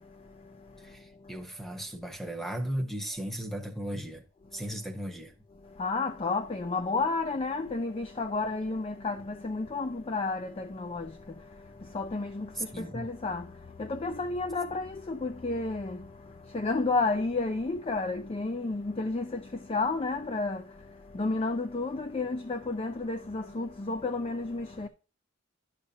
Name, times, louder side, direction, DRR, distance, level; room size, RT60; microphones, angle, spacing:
voice 1, 0.8-4.2 4.5-5.3 12.6-13.1, right 1 dB, ahead, 1.0 m, -36 dB
voice 2, 5.8-11.1 11.9-13.5 13.8-16.1 16.5-20.6 21.1-24.9, left 3 dB, 30° left, 0.4 m, -31 dB
11.0 x 6.7 x 2.8 m
head